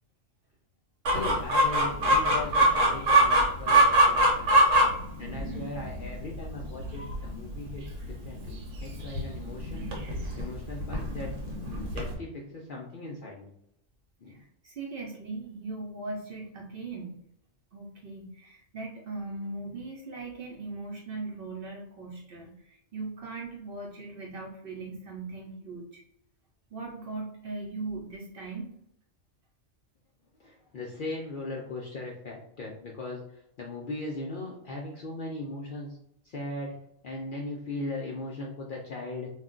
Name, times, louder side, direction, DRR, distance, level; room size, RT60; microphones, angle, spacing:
voice 1, 1.1-4.6 5.2-9.9 10.4-11.3 11.6-13.5 14.2-14.4 30.4-36.0 36.2-36.7 37.0-39.3, left 2 dB, 60° left, -2 dB, 0.5 m, -38 dB
Chicken rooster, 1.1-12.2, right 1 dB, 75° right, 1.1 m, -24 dB
voice 2, 14.6-17.2 17.7-26.0 26.7-28.7, right 3 dB, 55° right, -1 dB, 0.7 m, -39 dB
2.4 x 2.2 x 3.7 m, 0.73 s
omnidirectional pair, 1.3 m